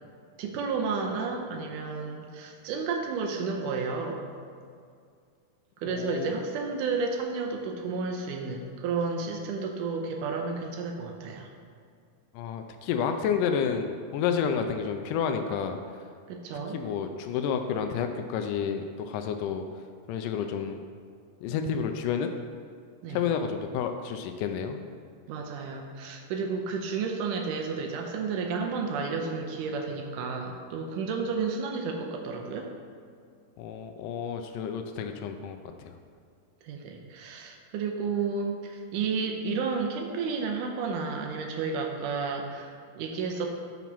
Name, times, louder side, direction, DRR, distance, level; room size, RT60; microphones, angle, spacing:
voice 1, 0.4-4.3 5.8-11.5 16.3-16.8 23.0-23.2 25.3-32.7 36.6-43.5, right 4 dB, 85° right, 3 dB, 2.3 m, -32 dB
voice 2, 5.8-6.3 12.3-15.8 16.7-19.7 20.1-20.8 21.4-22.3 23.1-24.8 33.6-35.6 35.8-35.9, left 7 dB, 85° left, 6 dB, 2.1 m, -30 dB
6.0 x 5.9 x 5.4 m, 2.3 s
omnidirectional pair, 3.7 m